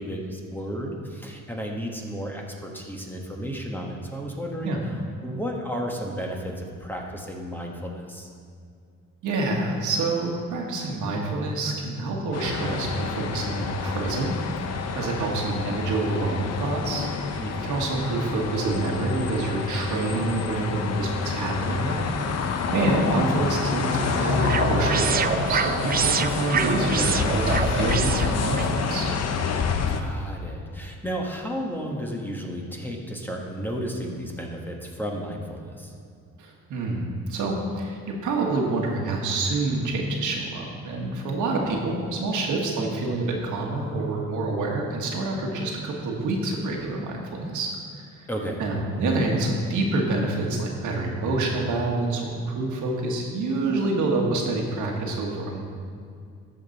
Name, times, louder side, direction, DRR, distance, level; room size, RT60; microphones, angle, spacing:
voice 1, 0.0-4.8 5.2-8.3 17.4-17.8 22.8-23.1 29.9-35.9 48.3-48.7, equal, 5° left, 0 dB, 1.3 m, -33 dB
voice 2, 9.2-14.3 14.9-22.1 22.4-29.1 36.4-47.7 48.6-55.6, right 2 dB, 80° right, 0 dB, 1.6 m, -27 dB
sound 1, 12.3-30.0, left 5 dB, 60° left, 0.8 m, -28 dB
sound 2, 23.5-28.7, right 7 dB, 30° right, 0.4 m, -27 dB
13.5 x 5.3 x 4.1 m, 2.3 s
cardioid pair, 90°, 30 cm